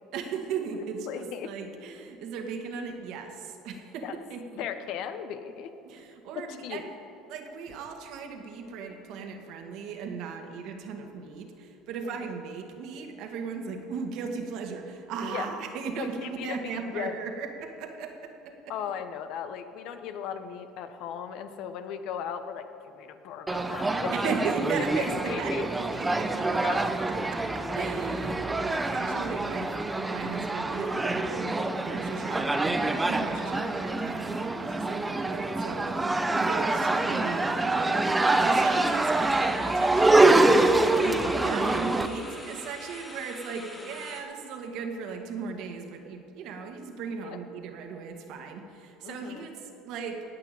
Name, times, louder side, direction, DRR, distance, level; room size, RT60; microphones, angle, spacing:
voice 1, 0.1-4.6 5.8-6.8 7.3-18.7 24.1-26.5 27.3-37.8 38.4-50.2, right 5 dB, 65° right, 4 dB, 1.8 m, -37 dB
voice 2, 1.1-1.5 4.0-4.2 4.5-6.0 6.4-6.8 12.0-12.2 15.3-15.5 16.0-17.1 18.7-24.3 24.8-25.6 26.6-26.8 29.1-29.3 41.0-41.4 43.5-44.0 47.2-47.4 49.0-49.5, left 8 dB, 65° left, 10 dB, 0.9 m, -37 dB
sound 1, 23.5-42.1, right 2 dB, 10° right, 0.7 m, -25 dB
sound 2, 38.5-44.2, left 1 dB, 10° left, 2.5 m, -44 dB
17.5 x 6.0 x 9.0 m, 2.8 s
cardioid pair, 130°, 0 cm